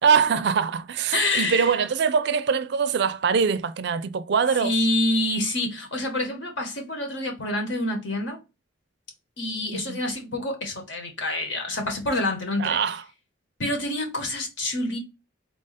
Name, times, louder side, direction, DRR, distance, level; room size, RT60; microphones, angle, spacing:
voice 1, 0.0-4.8 9.7-10.0 12.6-13.0, right 6 dB, 60° right, 0.4 m, -23 dB
voice 2, 1.1-1.7 4.6-8.4 9.4-12.8 13.6-15.0, left 1 dB, 70° left, 1.4 m, -27 dB
3.9 x 2.5 x 4.0 m
head